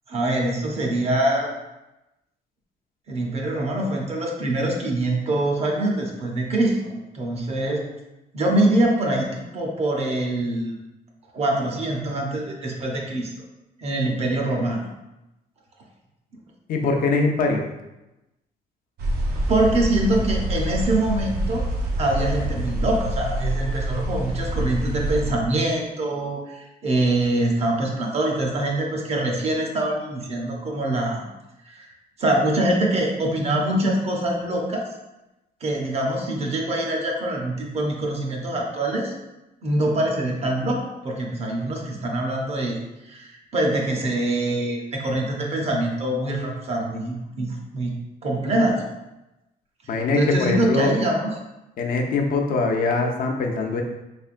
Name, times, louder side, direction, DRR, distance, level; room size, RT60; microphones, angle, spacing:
voice 1, 0.1-1.5 3.1-7.9 8.3-10.8 11.3-13.3 13.8-14.8 19.5-21.7 22.0-31.2 31.7-31.9 32.2-34.8 35.6-39.1 39.6-42.8 43.0-48.0 48.2-48.9 49.9-51.3, right 1 dB, 40° right, 0 dB, 0.7 m, -24 dB
voice 2, 16.7-17.6 49.9-50.9 51.8-53.8, left 3 dB, 60° left, 2 dB, 0.5 m, -22 dB
sound 1, 19.0-25.3, right 1 dB, 80° right, 0.7 m, -26 dB
3.6 x 3.3 x 2.5 m, 0.98 s
cardioid pair, 135°, 17 cm